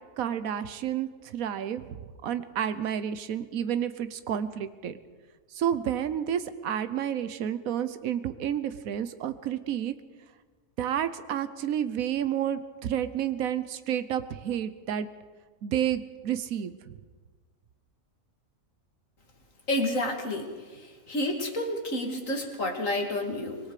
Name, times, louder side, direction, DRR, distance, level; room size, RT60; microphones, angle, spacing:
voice 1, 0.2-2.0 2.2-4.9 5.5-9.9 10.8-15.1 15.6-17.0, right 9 dB, 85° right, 12 dB, 1.3 m, -30 dB
voice 2, 19.7-20.8 21.1-23.6, left 1 dB, 70° left, 2 dB, 2.9 m, -30 dB
25.5 x 21.0 x 5.0 m, 1.4 s
omnidirectional pair, 1.4 m